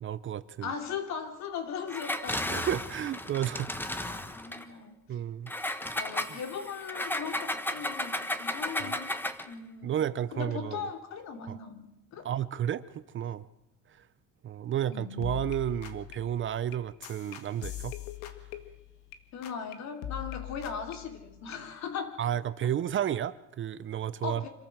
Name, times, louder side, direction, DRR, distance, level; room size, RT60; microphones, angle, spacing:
voice 1, 0.0-0.7 2.5-3.7 5.1-5.5 8.8-8.9 9.8-10.9 11.5-11.6 12.2-13.5 13.9-14.0 14.4-17.9 22.2-24.4, right 10 dB, 35° right, 15 dB, 0.7 m, -32 dB
voice 2, 0.6-2.6 3.9-4.9 6.0-9.1 9.4-10.0 10.3-12.3 14.8-15.3 19.3-22.2 24.2-24.5, left 6 dB, 55° left, 5 dB, 3.2 m, -38 dB
Engine, 1.9-4.6 5.5-9.5, left 1 dB, 5° left, 1.2 m, -34 dB
sound 1, 14.9-15.0 15.2-19.2 19.4-19.7 20.0-21.6, left 12 dB, 75° left, 2.0 m, -42 dB
26.5 x 13.5 x 7.4 m, 0.91 s
cardioid pair, 120°, 33 cm